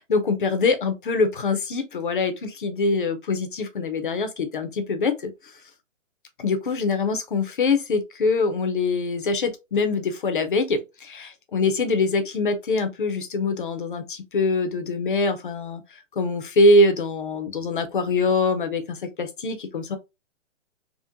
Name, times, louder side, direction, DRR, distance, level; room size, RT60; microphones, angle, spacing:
voice 1, 0.0-5.3 6.4-15.8 16.2-20.0, left 3 dB, 45° left, 0.5 m, -23 dB
3.6 x 2.1 x 2.6 m
hypercardioid pair, 175°, 38 cm